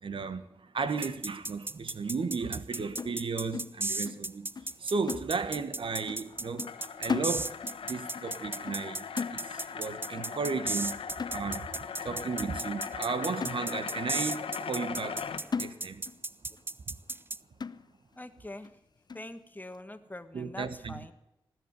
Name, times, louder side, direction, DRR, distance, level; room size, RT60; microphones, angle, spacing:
voice 1, 0.0-4.5 4.8-6.7 7.0-7.6 7.8-11.0 11.3-15.2 15.5-16.0 16.9-17.0 20.3-20.9, right 4 dB, 65° right, 1.3 m, -34 dB
sound 1, 1.0-17.4, right 2 dB, 25° right, 0.6 m, -35 dB
sound 2, 3.0-4.3 4.6-4.8 5.1-5.8 6.1-6.3 6.6-7.8 8.1-8.4 8.7-9.8 10.2-10.4 10.7-10.9 11.2-11.8 12.3-12.4 12.9-13.0 13.4-14.1 14.5-14.6 15.0-15.2 15.5-16.2 16.6-16.7 17.1-17.2 17.6-18.1 18.6-18.7 19.1-19.3, left 5 dB, 50° left, 0.6 m, -38 dB
sound 3, 5.9-15.4, left 7 dB, 75° left, 1.4 m, -40 dB
voice 2, 18.2-18.7 19.1-21.1, left 1 dB, 20° left, 1.5 m, -44 dB
19.0 x 7.9 x 9.5 m
cardioid pair, 45°, 9 cm